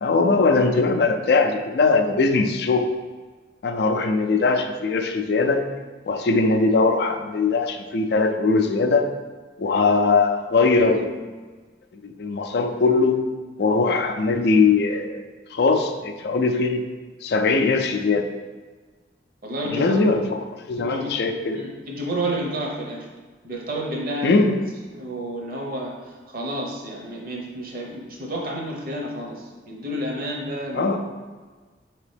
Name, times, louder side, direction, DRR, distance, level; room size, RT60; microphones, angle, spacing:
voice 1, 0.0-3.0 3.6-5.6 6.1-9.1 9.6-11.1 12.0-13.3 13.6-15.2 15.5-16.9 17.2-18.3 19.7-21.6 24.2-24.7 30.7-31.0, left 3 dB, 65° left, 6 dB, 0.4 m, -20 dB
voice 2, 19.4-20.0 20.8-21.2 21.5-23.1 23.4-24.4 24.9-31.0, right 1 dB, 50° right, -1 dB, 0.8 m, -30 dB
4.8 x 2.9 x 3.3 m, 1.4 s
head